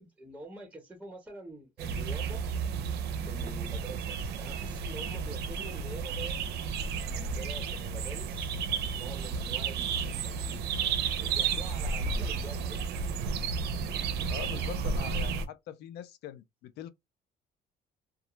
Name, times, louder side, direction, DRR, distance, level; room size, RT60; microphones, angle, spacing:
voice 1, 0.0-2.4 3.2-6.4 7.1-8.5 8.9-10.7 11.2-12.9, right 2 dB, 10° right, 0.9 m, -46 dB
sound 1, 1.8-15.5, right 5 dB, 75° right, 0.5 m, -32 dB
voice 2, 14.3-16.9, left 10 dB, 75° left, 0.4 m, -43 dB
2.3 x 2.1 x 3.0 m
cardioid pair, 110°, 17 cm